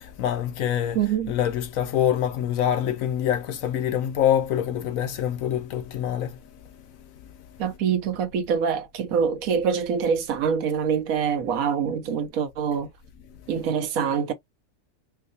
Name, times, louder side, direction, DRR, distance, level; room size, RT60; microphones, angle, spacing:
voice 1, 0.0-1.0 1.3-7.5 13.3-13.4, left 10 dB, 70° left, 1.0 m, -26 dB
voice 2, 0.9-1.3 7.6-12.9 13.5-14.3, right 7 dB, 70° right, 1.1 m, -25 dB
4.5 x 2.2 x 2.5 m
omnidirectional pair, 1.6 m